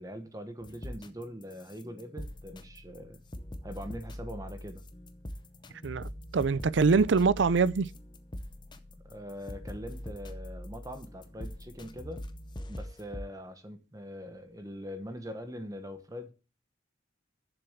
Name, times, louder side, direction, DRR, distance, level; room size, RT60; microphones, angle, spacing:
voice 1, 0.0-3.2 3.6-4.9 9.0-12.2 12.7-16.3, equal, 20° right, 1.1 m, -42 dB
sound 1, 0.6-13.3, left 1 dB, 25° left, 0.7 m, -43 dB
voice 2, 5.8-7.9, right 4 dB, 85° right, 0.5 m, -24 dB
7.1 x 6.8 x 7.1 m
head